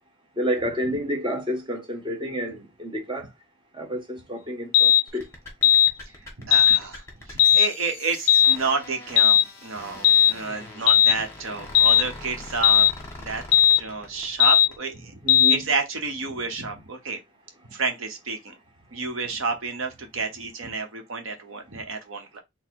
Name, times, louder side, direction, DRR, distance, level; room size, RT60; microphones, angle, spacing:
voice 1, 0.4-3.2 3.8-5.2 15.2-15.6, equal, 25° right, 0.9 m, -29 dB
sound 1, 4.7-5.0 5.6-5.9 6.5-6.8 7.4-7.7 8.3-8.6 9.2-9.4 10.0-10.3 10.9-11.1 11.7-12.0 12.6-12.9 13.5-13.8 14.4-14.7 15.3-15.6, left 10 dB, 80° left, 0.4 m, -16 dB
sound 2, 5.1-14.8, left 2 dB, 15° left, 1.4 m, -42 dB
voice 2, 6.2-12.9 13.2-13.4 13.8-17.2 17.7-18.6 18.9-22.4, right 4 dB, 75° right, 0.9 m, -30 dB
4.1 x 2.1 x 4.5 m
head